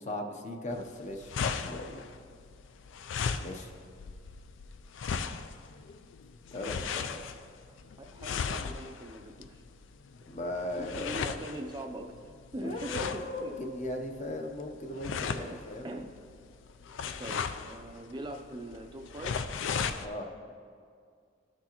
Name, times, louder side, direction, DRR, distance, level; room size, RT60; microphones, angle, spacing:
voice 1, 0.0-1.3 1.6-2.0 3.4-3.7 6.5-7.2 10.3-11.1 12.6-15.9 20.0-20.3, left 1 dB, 35° left, 3 dB, 0.7 m, -38 dB
sound 1, 0.7-20.1, left 6 dB, 75° left, 0.4 m, -37 dB
voice 2, 8.0-9.6 10.8-13.5 15.4-15.6 15.8-16.1 17.2-19.4, right 1 dB, 20° right, 3 dB, 0.4 m, -41 dB
13.0 x 6.1 x 2.9 m, 2.2 s
head